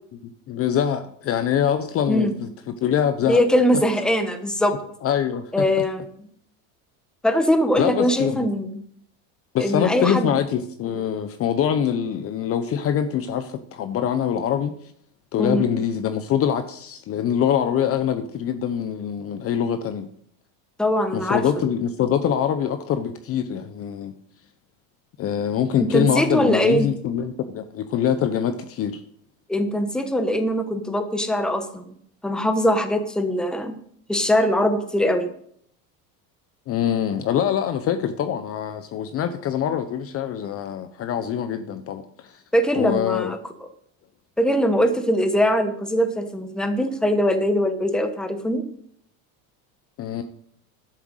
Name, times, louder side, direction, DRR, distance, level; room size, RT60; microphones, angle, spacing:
voice 1, 0.5-3.4 5.0-5.7 7.8-8.5 9.5-14.7 15.3-20.1 21.1-24.2 25.2-29.0 36.7-42.4 42.8-43.3 50.0-50.2, left 9 dB, 35° left, 0.7 m, -24 dB
voice 2, 3.3-4.8 5.5-6.0 7.2-8.8 9.6-10.3 15.4-15.7 20.8-21.4 25.9-26.9 29.5-31.8 32.2-33.8 34.1-35.3 42.5-43.4 44.4-48.6, equal, ahead, 1.0 m, -21 dB
11.0 x 7.8 x 6.4 m
cardioid pair, 150°, 41 cm